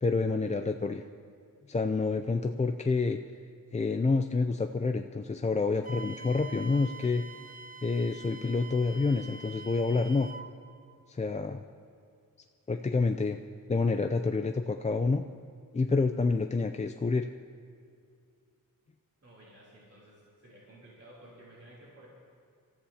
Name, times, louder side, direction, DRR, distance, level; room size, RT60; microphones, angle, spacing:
voice 1, 0.0-1.0 1.7-3.2 3.7-7.2 7.8-10.3 11.1-11.6 12.7-13.4 13.7-15.2 15.7-17.3, left 3 dB, 20° left, 6 dB, 0.4 m, -28 dB
Wind instrument woodwind instrument, 5.8-10.5, right 3 dB, 25° right, 0.9 m, -46 dB
voice 2, 19.2-22.1, right 1 dB, 45° right, -6 dB, 3.2 m, -54 dB
27.0 x 14.5 x 2.8 m, 2.3 s
wide cardioid pair, 125°, 34 cm